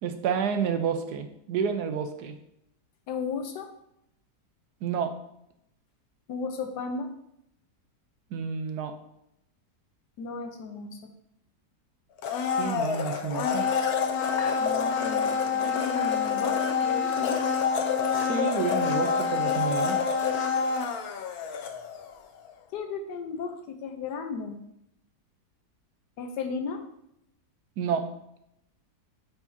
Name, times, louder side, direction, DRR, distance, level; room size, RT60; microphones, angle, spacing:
voice 1, 0.0-2.4 4.8-5.1 8.3-8.9 12.6-13.7 18.2-20.0 27.8-28.1, right 6 dB, 75° right, 7 dB, 1.2 m, -29 dB
voice 2, 3.1-3.7 6.3-7.1 10.2-11.1 14.6-17.4 22.7-24.6 26.2-26.8, left 5 dB, 90° left, 6 dB, 1.4 m, -35 dB
Domestic sounds home sounds, 12.2-22.2 22.5-22.6, left 6 dB, 70° left, 1.1 m, -27 dB
8.9 x 4.8 x 2.8 m, 0.78 s
omnidirectional pair, 1.7 m